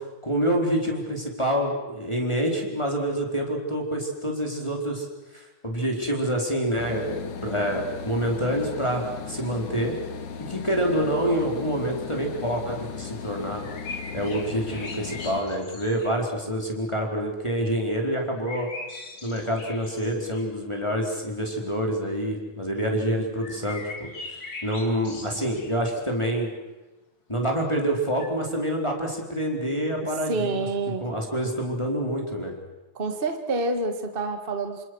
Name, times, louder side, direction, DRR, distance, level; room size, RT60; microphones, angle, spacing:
voice 1, 0.2-5.1 5.3-10.0 10.5-13.6 14.1-18.7 19.2-24.1 24.6-26.5 27.3-30.7 31.0-32.5, equal, 10° left, 0 dB, 4.2 m, -27 dB
sound 1, 6.8-15.4, left 6 dB, 75° left, 3.1 m, -37 dB
sound 2, 13.4-16.2 18.5-20.5 23.4-25.8 28.2-28.3, left 3 dB, 35° left, 3.5 m, -40 dB
voice 2, 30.3-31.1 32.9-34.8, right 3 dB, 20° right, 6 dB, 1.7 m, -27 dB
28.0 x 27.5 x 6.4 m, 1.1 s
omnidirectional pair, 3.4 m